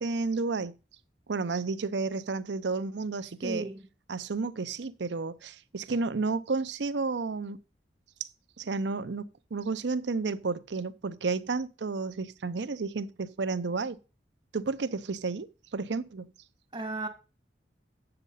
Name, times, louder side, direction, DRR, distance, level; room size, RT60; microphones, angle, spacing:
voice 1, 0.0-0.7 1.3-3.7 4.1-7.6 8.6-14.0 14.5-16.3, right 4 dB, 70° right, 0.6 m, -31 dB
voice 2, 3.4-3.9 16.7-17.1, right 2 dB, 25° right, 2.2 m, -34 dB
8.3 x 6.9 x 5.5 m
head